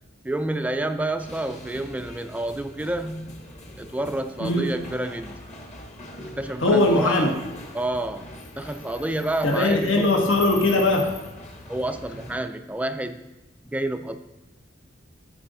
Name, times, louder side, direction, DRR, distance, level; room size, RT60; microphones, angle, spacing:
voice 1, 0.2-3.4 3.8-5.4 6.4-7.4 7.7-10.2 11.7-13.3 13.7-14.2, right 1 dB, 5° right, 9 dB, 0.3 m, -29 dB
sound 1, 1.2-12.4, left 2 dB, 35° left, 1.1 m, -42 dB
voice 2, 4.4-4.7 6.6-7.3 9.4-11.1, left 2 dB, 75° left, 1 dB, 1.2 m, -20 dB
11.5 x 5.0 x 3.9 m, 1.1 s
head